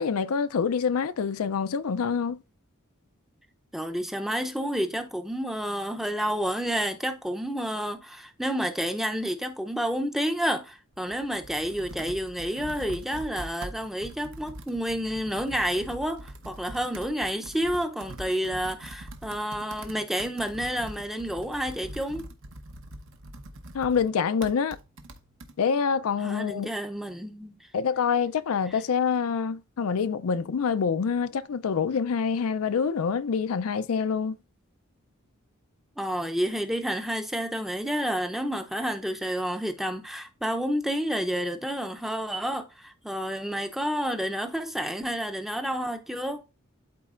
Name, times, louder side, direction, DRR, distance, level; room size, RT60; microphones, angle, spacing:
voice 1, 0.0-2.4 23.7-24.8 25.6-26.7 27.7-34.4, left 6 dB, 80° left, 0.4 m, -26 dB
voice 2, 3.7-22.3 26.2-27.6 36.0-46.4, equal, ahead, 0.6 m, -30 dB
Computer keyboard, 10.9-25.5, right 1 dB, 60° right, 0.9 m, -43 dB
12.0 x 4.1 x 2.5 m
head